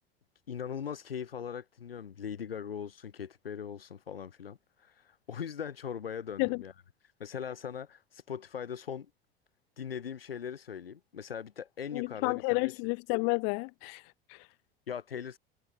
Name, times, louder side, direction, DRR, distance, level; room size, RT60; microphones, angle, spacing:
voice 1, 0.5-6.7 7.0-9.1 9.8-12.8 14.9-15.4, left 7 dB, 80° left, 1.8 m, -40 dB
voice 2, 11.9-14.0 14.3-14.4, left 40 dB or more, 45° left, 0.4 m, -30 dB
figure-of-eight pair, 75°, 29 cm